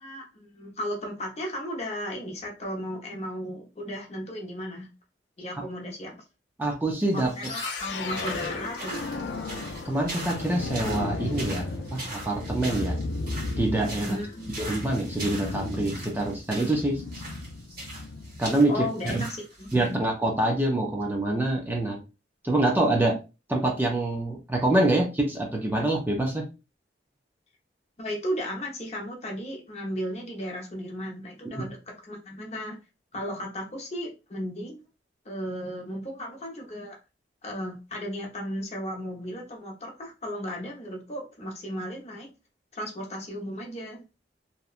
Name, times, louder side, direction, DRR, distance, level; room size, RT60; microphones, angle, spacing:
voice 1, 0.0-4.9 5.4-6.2 7.1-9.1 14.0-14.5 18.7-20.0 28.0-32.8 33.1-34.8 35.2-37.0 37.4-42.3 42.7-44.0, equal, 40° left, 0 dB, 0.7 m, -35 dB
voice 2, 6.6-7.3 9.8-13.0 13.6-14.2 14.6-17.0 18.4-18.9 19.1-19.2 19.7-22.0 22.4-23.2 23.5-26.5 31.5-31.6, right 2 dB, 10° right, 0 dB, 0.4 m, -25 dB
sound 1, 7.1-19.9, right 2 dB, 55° right, 1.3 m, -41 dB
sound 2, 7.4-18.5, left 3 dB, 75° left, 0.4 m, -35 dB
2.8 x 2.2 x 2.4 m, 0.29 s
head